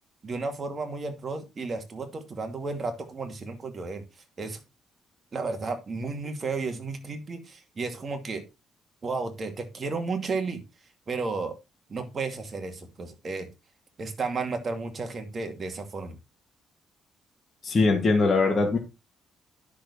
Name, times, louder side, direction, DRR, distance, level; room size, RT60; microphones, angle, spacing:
voice 1, 0.2-4.0 4.4-4.6 5.3-8.4 9.0-10.6 11.1-11.6 11.9-13.5 14.0-16.2, right 3 dB, 40° right, 6 dB, 2.4 m, -33 dB
voice 2, 17.6-18.8, left 3 dB, 35° left, 1 dB, 2.4 m, -21 dB
10.0 x 6.5 x 4.2 m, 0.26 s
cardioid pair, 90°, 0 cm